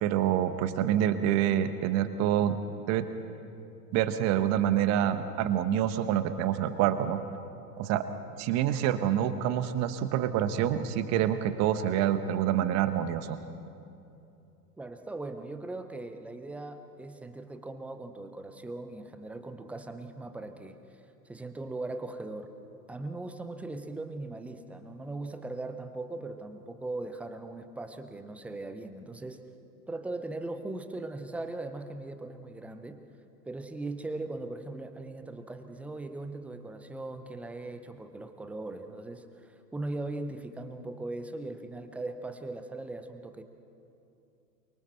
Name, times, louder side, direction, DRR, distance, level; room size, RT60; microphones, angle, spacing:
voice 1, 0.0-2.6 2.9-3.0 3.9-7.2 7.8-8.0 8.4-13.4, right 10 dB, 30° right, 10 dB, 1.3 m, -27 dB
voice 2, 14.8-21.0 21.3-22.5 22.9-29.4 29.9-33.0 33.4-43.4, right 2 dB, 5° right, 8 dB, 0.5 m, -39 dB
28.5 x 23.5 x 4.4 m, 2.7 s
figure-of-eight pair, 100°, 49 cm